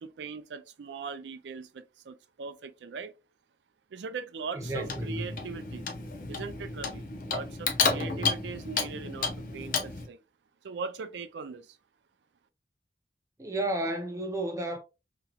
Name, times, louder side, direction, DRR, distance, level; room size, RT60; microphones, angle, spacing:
voice 1, 0.0-3.1 3.9-5.9 6.3-10.2 10.6-11.8, right 5 dB, 85° right, 0.4 m, -40 dB
voice 2, 4.5-5.4 7.9-8.3 13.4-14.8, right 1 dB, 15° right, 0.4 m, -33 dB
Clock, 4.6-10.1, left 5 dB, 50° left, 0.6 m, -32 dB
3.0 x 2.7 x 2.2 m
head